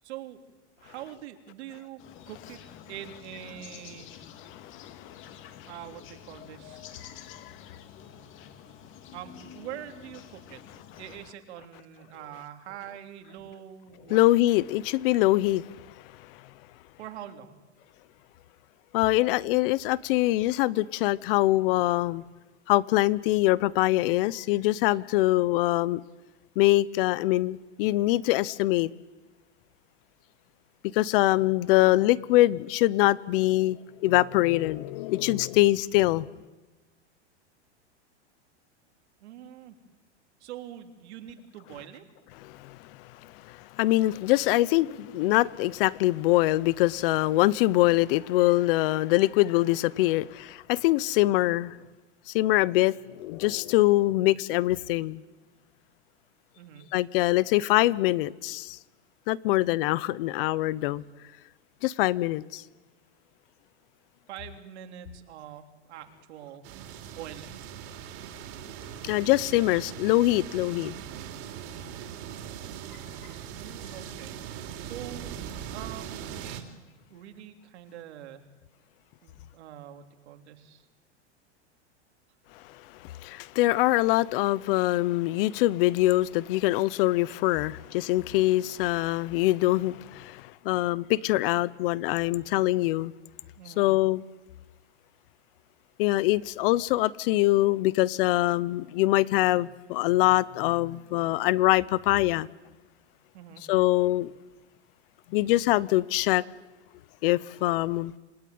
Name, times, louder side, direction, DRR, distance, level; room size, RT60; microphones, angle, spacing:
voice 1, 0.0-0.4 0.8-2.0 2.3-2.6 2.9-4.1 5.7-6.9 9.1-10.6 11.0-14.2 17.0-17.6 39.2-39.8 40.4-42.0 56.6-56.9 64.3-66.6 67.1-67.6 73.5-74.3 74.8-75.5 75.7-76.6 77.1-78.4 79.2-80.9 93.5-93.9 103.3-103.6, right 11 dB, 70° right, 3.4 m, -44 dB
sound 1, 2.0-11.2, left 9 dB, 35° left, 2.6 m, -48 dB
voice 2, 4.5-5.1 7.3-7.4 14.1-15.7 18.9-22.2 22.7-26.0 26.6-28.9 30.9-36.3 42.4-42.8 43.2-51.8 52.3-55.2 56.9-58.8 59.3-61.0 61.8-62.6 69.0-70.9 83.0-93.1 93.8-94.2 96.0-102.5 103.7-104.3 105.3-106.4 107.2-108.1, left 17 dB, 50° left, 0.9 m, -24 dB
sound 2, 66.6-76.6, right 9 dB, 40° right, 3.6 m, -40 dB
27.5 x 18.0 x 9.5 m
supercardioid pair, 140°, 35 cm